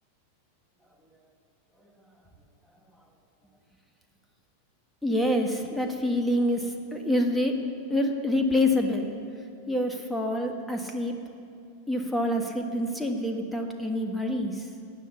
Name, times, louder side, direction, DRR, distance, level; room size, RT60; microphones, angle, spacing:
voice 1, 5.0-7.6 7.9-9.1 9.7-11.2 11.9-14.7, left 1 dB, 5° left, 3 dB, 1.5 m, -26 dB
19.5 x 9.9 x 7.1 m, 2.4 s
figure-of-eight pair, 90°, 0 cm